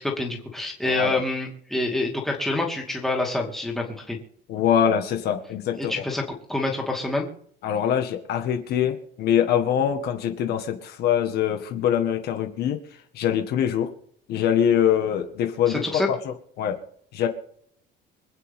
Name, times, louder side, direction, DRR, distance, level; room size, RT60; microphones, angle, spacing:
voice 1, 0.0-4.2 5.8-6.2 6.5-7.3 15.7-16.1, left 2 dB, ahead, -1 dB, 2.6 m, -27 dB
voice 2, 0.8-1.2 4.5-6.0 7.6-12.8 13.1-13.9 14.3-16.8 17.1-17.3, left 9 dB, 55° left, 5 dB, 1.7 m, -24 dB
25.5 x 9.1 x 3.7 m, 0.64 s
cardioid pair, 175°, 20 cm